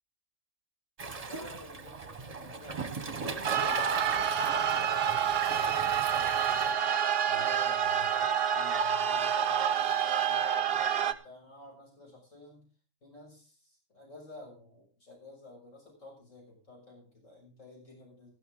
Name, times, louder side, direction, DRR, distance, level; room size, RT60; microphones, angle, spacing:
Waves surf, 1.0-6.7, right 4 dB, 30° right, 1.1 m, -39 dB
voice 1, 1.3-5.2 5.6-6.9 7.2-12.7 13.0-18.3, left 2 dB, 80° left, -1 dB, 6.6 m, -50 dB
sound 1, 3.4-11.1, right 8 dB, 55° right, 0.9 m, -28 dB
14.0 x 13.0 x 3.7 m, 0.36 s
omnidirectional pair, 1.3 m